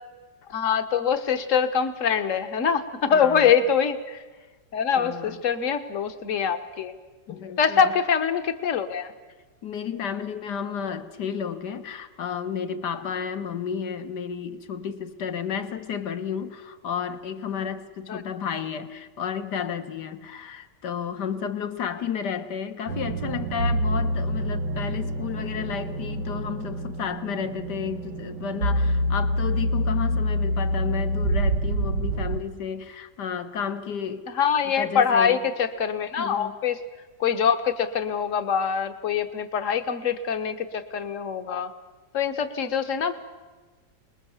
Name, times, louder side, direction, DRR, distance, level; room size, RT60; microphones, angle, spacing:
voice 1, 0.5-4.2 4.7-6.9 7.6-9.1 18.1-18.2 34.3-36.8 37.2-41.7 42.1-43.2, left 7 dB, 50° left, 1.6 m, -24 dB
voice 2, 3.1-3.5 5.0-5.4 7.3-7.9 9.6-34.3 34.8-35.4 36.2-36.6, left 7 dB, 70° left, 1.9 m, -32 dB
sound 1, 22.9-32.4, equal, 80° right, 1.7 m, -26 dB
26.5 x 21.0 x 7.3 m
omnidirectional pair, 1.9 m